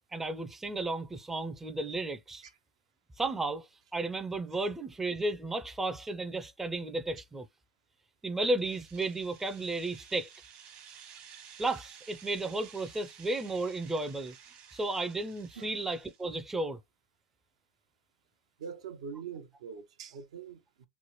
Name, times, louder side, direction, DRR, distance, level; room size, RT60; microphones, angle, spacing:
voice 1, 0.1-2.4 3.2-7.5 8.2-10.3 11.6-14.4 14.7-16.8, right 2 dB, 10° right, 0.4 m, -33 dB
sound 1, 8.4-16.3, right 8 dB, 55° right, 1.0 m, -53 dB
voice 2, 18.6-20.9, right 6 dB, 80° right, 0.6 m, -43 dB
3.1 x 2.0 x 3.0 m
hypercardioid pair, 105°, 3 cm